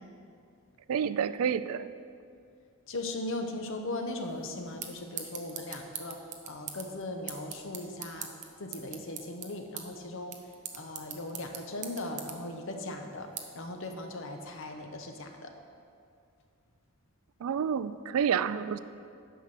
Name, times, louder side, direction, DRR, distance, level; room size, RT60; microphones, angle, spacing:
voice 1, 0.9-1.9 17.4-18.8, right 7 dB, 75° right, 14 dB, 0.3 m, -29 dB
voice 2, 2.9-6.2 6.5-8.3 8.6-10.3 10.7-13.3 13.5-15.5, left 2 dB, 60° left, 4 dB, 0.9 m, -38 dB
sound 1, 4.2-14.7, right 7 dB, 35° right, 0.7 m, -45 dB
9.3 x 5.8 x 5.9 m, 2.4 s
head